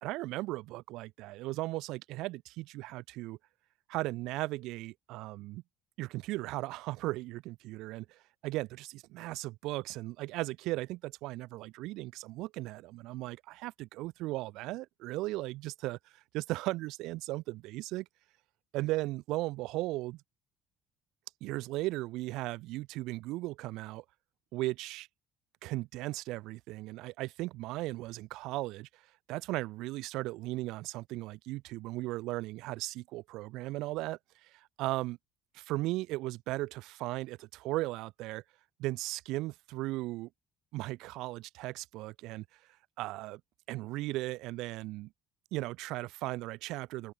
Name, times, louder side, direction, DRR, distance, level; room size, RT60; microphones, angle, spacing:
voice 1, 0.0-3.4 3.9-5.6 6.0-18.1 18.7-20.2 21.4-24.0 24.5-25.1 25.6-29.0 29.3-35.2 35.5-38.4 38.8-40.3 40.7-42.4 43.0-43.4 43.7-45.1 45.5-47.1, right 19 dB, 80° right, 0.8 m, -37 dB
cardioid pair, 100°, 0 cm